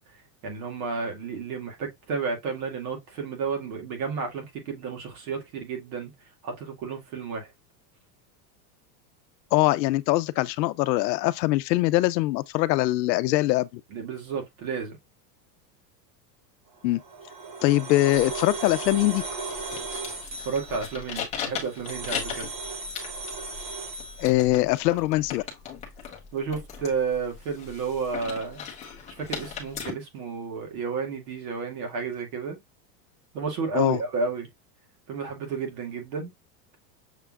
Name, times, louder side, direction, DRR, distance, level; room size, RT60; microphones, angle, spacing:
voice 1, 0.4-6.1 6.4-7.5 13.9-15.0 20.5-22.5 26.3-28.6 29.1-32.6 33.3-34.5 35.1-36.3, right 5 dB, 55° right, 2.2 m, -31 dB
voice 2, 9.5-13.8 16.8-17.0 17.6-19.2 24.2-25.4 33.7-34.0, left 18 dB, 80° left, 0.6 m, -22 dB
sound 1, 16.8-24.3, right 3 dB, 25° right, 0.4 m, -36 dB
sound 2, 18.1-29.9, left 7 dB, 15° left, 0.8 m, -39 dB
6.6 x 3.5 x 2.3 m
supercardioid pair, 180°, 50 cm